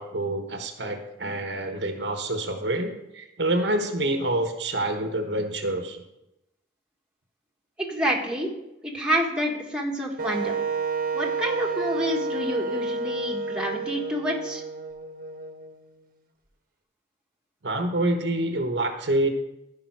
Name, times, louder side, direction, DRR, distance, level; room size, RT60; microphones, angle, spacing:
voice 1, 0.0-6.0 17.6-19.3, right 1 dB, 70° right, 5 dB, 1.1 m, -27 dB
voice 2, 7.8-8.5 8.8-10.5 11.1-14.6, equal, 5° right, -1 dB, 1.6 m, -28 dB
Wind instrument woodwind instrument, 10.2-16.0, right 4 dB, 50° right, 1.2 m, -30 dB
15.0 x 5.2 x 4.7 m, 0.90 s
head